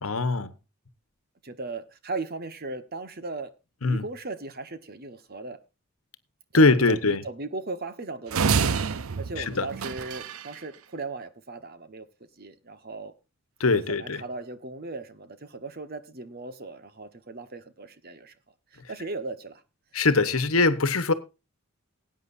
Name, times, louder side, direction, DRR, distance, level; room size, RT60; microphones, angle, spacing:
voice 1, 0.0-0.5 3.8-4.0 6.5-7.2 9.4-9.7 13.6-14.2 19.9-21.1, left 3 dB, 80° left, 1.2 m, -22 dB
voice 2, 1.4-3.5 3.8-5.6 6.5-12.1 12.4-13.1 13.7-18.3 18.7-19.6, right 3 dB, 45° right, 1.3 m, -37 dB
sound 1, 8.3-10.5, right 5 dB, 80° right, 0.6 m, -27 dB
19.0 x 9.1 x 2.7 m
head